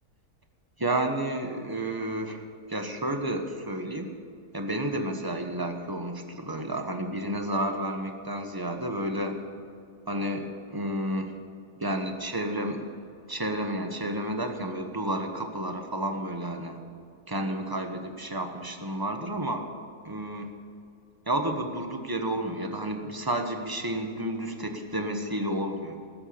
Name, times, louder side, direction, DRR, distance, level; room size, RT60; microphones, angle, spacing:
voice 1, 0.8-2.4 2.7-4.1 4.5-9.4 10.1-11.3 11.8-12.9 13.3-16.8 17.3-19.6 20.0-20.5 21.3-26.0, right 1 dB, 15° right, 5 dB, 1.2 m, -31 dB
19.0 x 8.3 x 7.1 m, 2.5 s
omnidirectional pair, 1.6 m